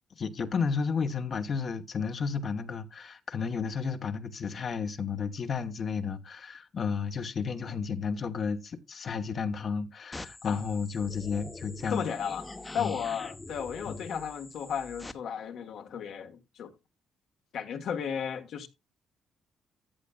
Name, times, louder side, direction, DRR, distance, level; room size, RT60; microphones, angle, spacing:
voice 1, 0.2-12.1 12.8-12.9 13.9-14.0, left 5 dB, 50° left, 1.0 m, -32 dB
sound 1, 10.1-15.1, left 2 dB, 20° left, 0.9 m, -44 dB
voice 2, 11.9-12.4 12.7-16.7 17.5-18.7, left 7 dB, 75° left, 1.4 m, -34 dB
14.0 x 7.4 x 2.3 m
cardioid pair, 90°, 0 cm